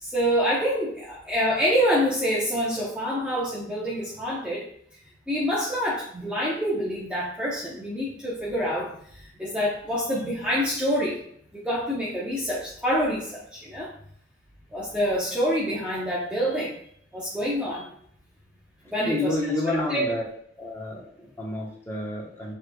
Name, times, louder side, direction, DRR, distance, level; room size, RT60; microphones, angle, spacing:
voice 1, 0.0-4.7 5.3-11.2 11.5-13.9 14.7-16.7 17.1-17.9 18.8-20.1, equal, 5° right, -6 dB, 0.7 m, -26 dB
voice 2, 19.1-20.2 20.6-22.5, left 2 dB, 15° left, -3 dB, 1.0 m, -29 dB
7.2 x 3.1 x 2.2 m, 0.65 s
head